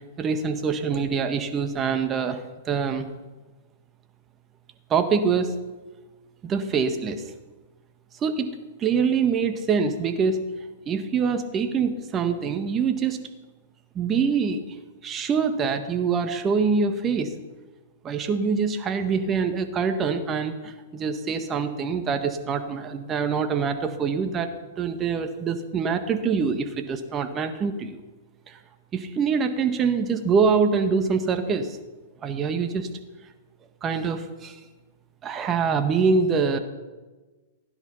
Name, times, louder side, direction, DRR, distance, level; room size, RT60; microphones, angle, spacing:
voice 1, 0.2-3.1 4.9-5.6 6.4-7.2 8.2-10.5 10.8-13.2 13.9-14.6 15.0-17.3 18.0-24.5 24.8-28.0 28.5-28.6 28.9-31.8 32.2-32.9 33.8-34.6 35.2-36.6, right 5 dB, 25° right, 8 dB, 1.6 m, -25 dB
16.0 x 10.5 x 5.7 m, 1.2 s
hypercardioid pair, 115°, 0 cm